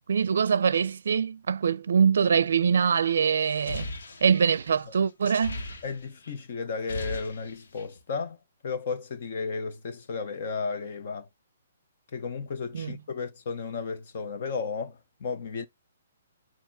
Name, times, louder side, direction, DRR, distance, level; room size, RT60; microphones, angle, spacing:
voice 1, 0.1-3.9 4.2-5.6 12.7-12.9, right 6 dB, 60° right, 0.5 m, -23 dB
sound 1, 3.4-6.3 6.6-8.0, left 2 dB, 70° left, 1.6 m, -38 dB
voice 2, 5.8-8.4 8.6-11.3 12.1-15.7, left 5 dB, 35° left, 0.8 m, -34 dB
7.2 x 2.8 x 5.7 m
hypercardioid pair, 180°, 0 cm